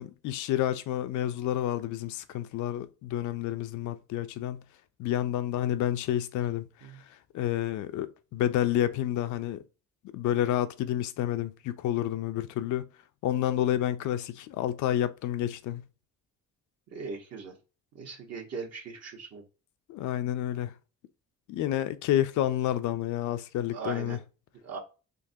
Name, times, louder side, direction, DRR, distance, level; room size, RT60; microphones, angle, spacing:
voice 1, 0.0-4.6 5.0-6.7 7.3-9.6 10.1-12.8 13.2-15.8 19.9-20.7 21.5-24.2, left 12 dB, 75° left, 0.5 m, -29 dB
voice 2, 16.9-17.6 17.9-19.4 23.7-24.2 24.6-24.8, right 4 dB, 55° right, 1.2 m, -39 dB
3.8 x 2.8 x 2.6 m
cardioid pair, 90°, 30 cm